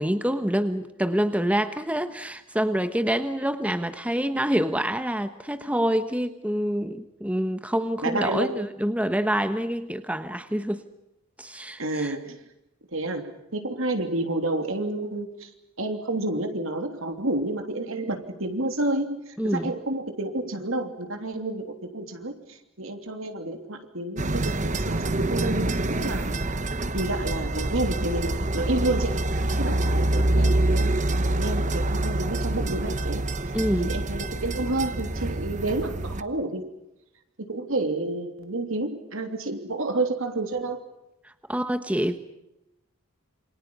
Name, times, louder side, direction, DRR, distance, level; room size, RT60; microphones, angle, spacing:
voice 1, 0.0-10.8 11.4-12.1 19.4-19.7 33.5-33.9 41.5-42.2, equal, 5° right, 9 dB, 1.2 m, -26 dB
voice 2, 8.0-8.6 11.8-12.4 12.9-15.5 15.8-26.3 26.9-33.2 33.7-36.7 37.4-40.8, right 2 dB, 65° right, 6 dB, 3.1 m, -30 dB
sound 1, 24.2-36.2, right 1 dB, 35° right, 1.1 m, -26 dB
28.0 x 26.0 x 5.5 m, 0.90 s
head